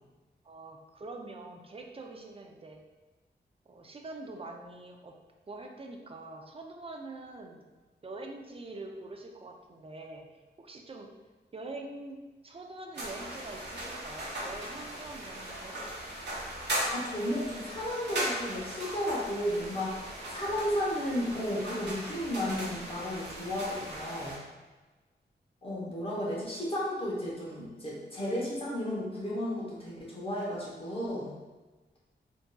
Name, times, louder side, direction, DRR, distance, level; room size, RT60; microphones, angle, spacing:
voice 1, 0.4-2.8 3.7-5.1 5.5-7.6 8.0-10.3 10.6-11.1 11.5-12.2 12.4-15.8, right 2 dB, 30° right, 2 dB, 0.4 m, -44 dB
sound 1, 12.9-24.4, right 1 dB, 75° right, 0.9 m, -38 dB
voice 2, 16.9-20.0 20.3-24.4 25.6-31.3, left 1 dB, 30° left, -6 dB, 0.9 m, -33 dB
3.5 x 2.6 x 2.2 m, 1.2 s
wide cardioid pair, 90°, 18 cm